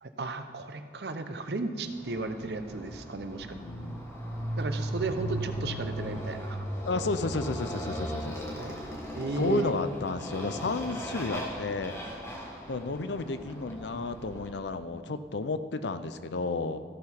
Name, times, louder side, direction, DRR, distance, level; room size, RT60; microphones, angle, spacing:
voice 1, 0.0-3.5 4.6-6.6 8.6-8.7 9.1-9.7, right 2 dB, 70° right, 8 dB, 0.7 m, -34 dB
Motorcycle, 1.9-14.6, equal, 15° left, 1.3 m, -37 dB
voice 2, 3.3-4.0 6.8-8.4 9.4-11.9 12.7-16.8, left 3 dB, 85° left, 11 dB, 0.6 m, -32 dB
14.5 x 5.8 x 5.8 m, 2.1 s
head